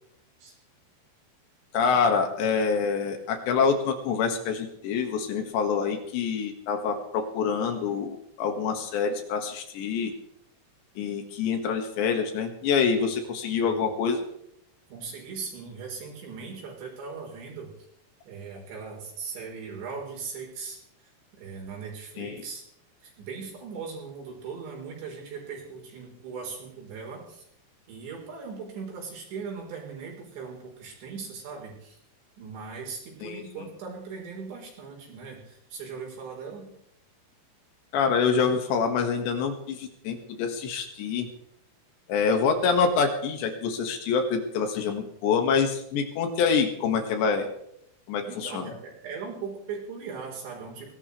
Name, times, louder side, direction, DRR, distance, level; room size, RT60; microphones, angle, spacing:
voice 1, 1.7-10.1 11.0-14.2 22.2-22.4 33.2-33.7 37.9-41.3 42.1-47.5 48.1-48.7, left 5 dB, 70° left, 5 dB, 3.7 m, -26 dB
voice 2, 13.0-13.9 14.9-17.7 18.3-22.6 23.0-27.4 27.9-32.0 32.4-36.6 48.2-50.9, right 5 dB, 65° right, -1 dB, 6.2 m, -39 dB
21.0 x 17.5 x 3.3 m, 0.74 s
omnidirectional pair, 5.7 m